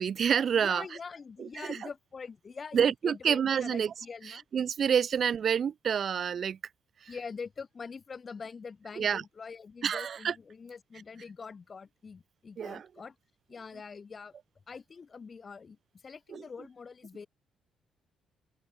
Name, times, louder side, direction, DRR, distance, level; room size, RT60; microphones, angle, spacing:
voice 1, 0.0-1.0 1.4-1.9 2.7-3.9 4.2-6.6 7.0-7.2 9.0-9.2 9.8-10.4 12.6-12.9 16.3-16.4, right 7 dB, 55° right, 1.8 m, -28 dB
voice 2, 0.6-4.4 7.1-13.1 13.5-14.3 14.7-15.8 16.0-17.3, left 5 dB, 40° left, 2.1 m, -44 dB
open air
cardioid pair, 90°, 0 cm